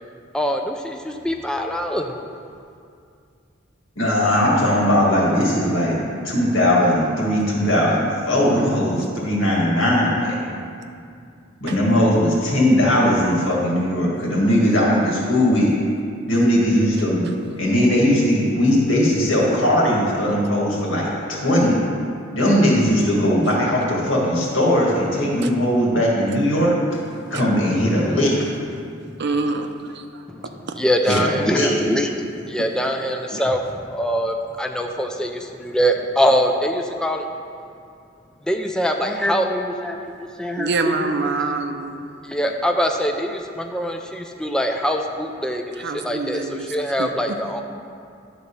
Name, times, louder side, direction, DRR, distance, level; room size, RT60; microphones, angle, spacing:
voice 1, 0.3-2.1 30.3-32.1 32.5-37.3 38.5-40.0 40.4-41.3 42.2-47.6, equal, 5° left, 3 dB, 0.4 m, -23 dB
voice 2, 4.0-10.4 11.6-15.7 16.3-17.3 17.6-21.8 22.3-26.8 27.3-28.4 31.1-31.7, equal, 80° left, -4 dB, 2.2 m, -19 dB
voice 3, 29.2-30.2 30.7-30.8 31.1-31.2 31.9-32.1 32.6-32.7 33.3-33.4 40.6-42.2 45.8-47.4, right 3 dB, 60° right, 6 dB, 0.6 m, -27 dB
11.0 x 4.1 x 6.8 m, 2.4 s
head